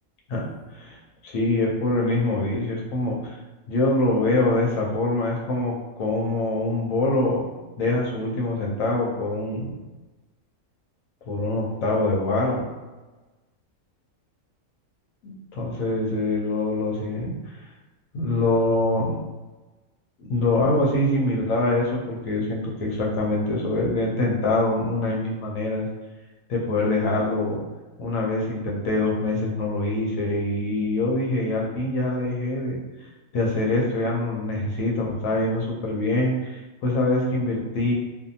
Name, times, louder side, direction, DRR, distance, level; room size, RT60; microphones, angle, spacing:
voice 1, 0.3-1.0 1.2-3.4 3.7-7.5 7.8-9.7 11.3-12.7 15.2-17.3 18.1-19.2 20.2-25.9 26.5-27.6 28.0-32.8 33.3-37.9, left 2 dB, 80° left, -2 dB, 1.1 m, -24 dB
2.6 x 2.2 x 2.6 m, 1.2 s
omnidirectional pair, 1.4 m